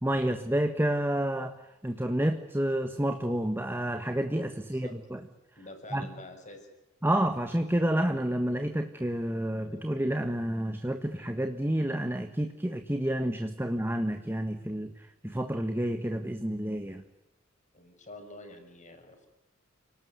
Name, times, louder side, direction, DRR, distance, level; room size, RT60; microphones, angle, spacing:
voice 1, 0.0-5.2 5.9-6.0 7.0-17.0, right 1 dB, 10° right, 6 dB, 1.5 m, -29 dB
voice 2, 4.6-5.0 5.6-6.7 17.7-19.3, left 2 dB, 35° left, 5 dB, 6.5 m, -47 dB
29.5 x 19.0 x 9.7 m, 0.91 s
head